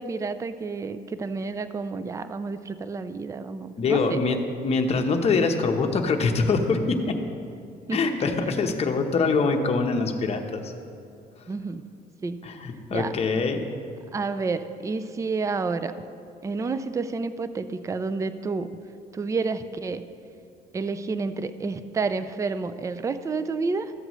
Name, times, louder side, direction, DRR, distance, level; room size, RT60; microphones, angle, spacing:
voice 1, 0.0-4.2 7.9-8.0 11.5-11.8 12.2-12.4 12.9-13.1 14.1-15.9 16.4-18.7 19.1-20.0 20.7-23.9, right 4 dB, 20° right, 12 dB, 0.4 m, -29 dB
voice 2, 3.8-4.4 4.6-7.1 7.9-10.7 12.4-13.6, left 4 dB, 40° left, 4 dB, 0.9 m, -24 dB
14.0 x 7.8 x 3.1 m, 2.5 s
cardioid pair, 110°, 17 cm